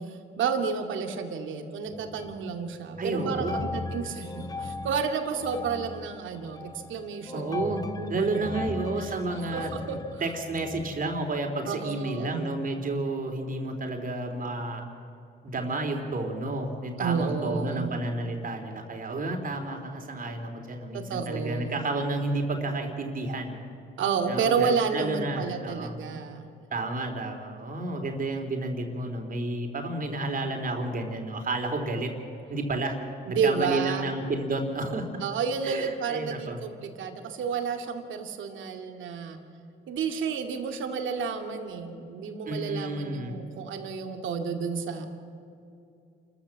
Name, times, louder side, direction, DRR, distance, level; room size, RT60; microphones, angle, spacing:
voice 1, 0.0-8.6 9.0-10.0 11.6-12.4 17.0-17.9 20.9-21.9 24.0-26.5 33.3-34.1 35.2-39.4 39.9-45.1, right 6 dB, 75° right, 5 dB, 2.3 m, -31 dB
sound 1, 1.9-2.7 2.9-11.4, left 3 dB, 20° left, 1.0 m, -38 dB
voice 2, 3.0-3.6 7.3-7.8 8.1-14.8 15.4-23.6 24.3-26.0 26.7-32.1 32.5-33.0 33.3-35.1 35.6-36.6 42.5-43.3, right 2 dB, 45° right, 3 dB, 3.6 m, -31 dB
28.5 x 14.5 x 7.5 m, 2.6 s
cardioid pair, 90°, 20 cm